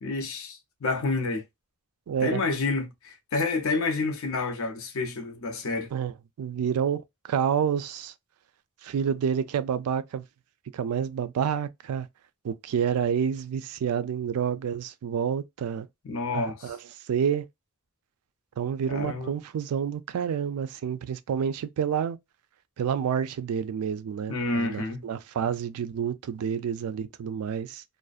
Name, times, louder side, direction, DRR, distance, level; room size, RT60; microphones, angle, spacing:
voice 1, 0.0-1.4 2.2-5.9 16.0-16.7 18.9-19.3 24.3-25.0, left 3 dB, 75° left, 0.6 m, -29 dB
voice 2, 2.1-2.4 5.9-8.1 8.8-10.2 10.7-12.1 12.4-15.9 16.3-16.8 17.1-17.5 18.6-22.2 22.8-27.8, right 7 dB, 90° right, 0.3 m, -29 dB
2.5 x 2.1 x 2.3 m
head